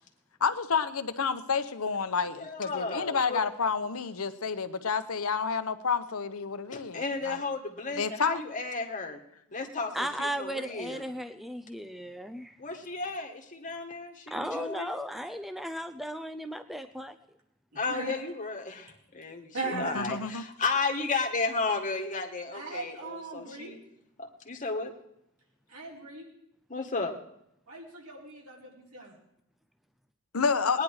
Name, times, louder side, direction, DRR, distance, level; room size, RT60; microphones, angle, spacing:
voice 1, 0.4-7.4 8.0-8.4 19.7-20.4 30.3-30.8, left 5 dB, 75° left, 10 dB, 0.9 m, -29 dB
voice 2, 2.3-3.4 6.7-9.2 9.5-11.0 12.6-14.9 17.7-23.8 24.2-24.9 26.7-27.1 30.7-30.8, left 4 dB, 35° left, 3 dB, 1.8 m, -33 dB
voice 3, 9.9-12.6 14.3-17.2, equal, ahead, 8 dB, 0.5 m, -36 dB
voice 4, 17.9-18.2 19.5-20.0 22.5-23.7 25.7-26.3 27.7-29.1, right 3 dB, 85° right, -2 dB, 4.5 m, -38 dB
20.0 x 10.5 x 4.8 m, 0.79 s
head